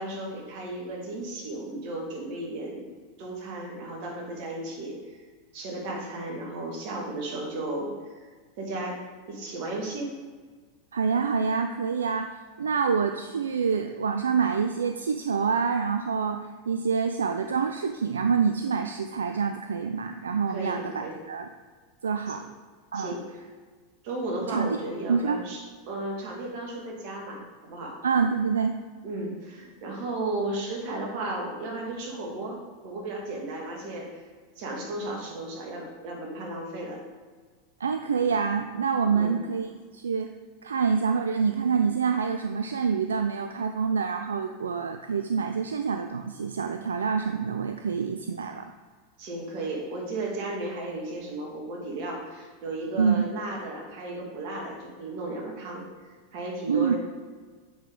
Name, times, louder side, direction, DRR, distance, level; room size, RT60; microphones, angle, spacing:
voice 1, 0.0-2.9 3.2-5.2 5.5-8.2 8.6-9.0 9.3-10.1 20.5-21.2 22.3-22.4 22.9-23.2 24.0-28.0 29.0-32.6 32.8-34.2 34.6-37.0 39.1-39.4 49.2-55.8 56.3-57.0, right 2 dB, 55° right, -1 dB, 1.9 m, -34 dB
voice 2, 10.9-21.5 22.0-22.5 22.9-23.2 24.5-24.8 25.1-25.5 28.0-28.8 37.8-40.3 40.6-48.7 53.0-53.2 56.7-56.9, right 6 dB, 80° right, 7 dB, 0.3 m, -26 dB
7.8 x 5.0 x 3.7 m, 1.5 s
hypercardioid pair, 90°, 0 cm